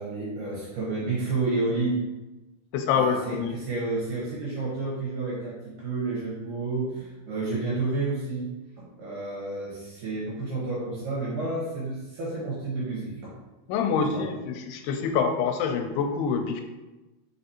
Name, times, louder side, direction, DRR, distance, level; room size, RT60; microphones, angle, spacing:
voice 1, 0.0-2.0 2.9-8.5 8.8-13.3 14.1-14.3, right 3 dB, 70° right, -6 dB, 1.9 m, -30 dB
voice 2, 2.7-3.5 13.7-16.6, left 6 dB, 85° left, 5 dB, 2.5 m, -26 dB
5.7 x 3.4 x 2.8 m, 1.1 s
omnidirectional pair, 4.7 m